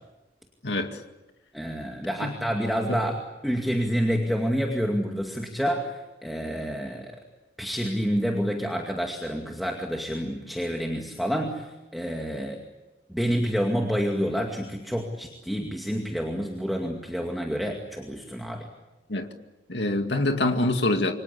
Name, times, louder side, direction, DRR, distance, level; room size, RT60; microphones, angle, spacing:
voice 1, 0.6-1.0 2.2-2.3 2.9-3.0 19.1-19.3 19.7-21.1, left 2 dB, 75° left, 5 dB, 2.2 m, -25 dB
voice 2, 1.5-3.2 3.4-5.9 6.2-7.1 7.6-11.7 11.9-12.6 13.1-18.7, equal, ahead, 1 dB, 2.3 m, -28 dB
28.0 x 25.0 x 8.4 m, 1.1 s
head